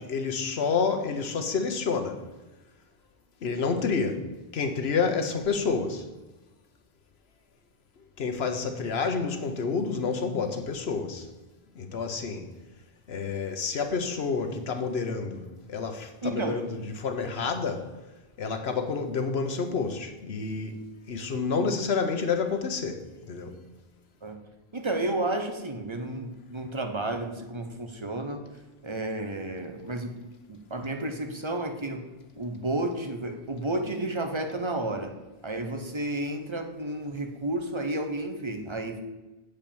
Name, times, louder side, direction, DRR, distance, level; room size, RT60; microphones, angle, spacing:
voice 1, 0.0-2.2 3.4-6.0 8.2-11.3 11.7-12.5 13.1-17.9 18.4-23.5, left 5 dB, 80° left, 1.2 m, -29 dB
voice 2, 16.2-16.6 24.2-24.4 24.7-28.4 28.8-32.1 32.3-35.1 35.4-39.0, right 2 dB, 30° right, 0.9 m, -32 dB
7.7 x 5.1 x 7.0 m
omnidirectional pair, 1.0 m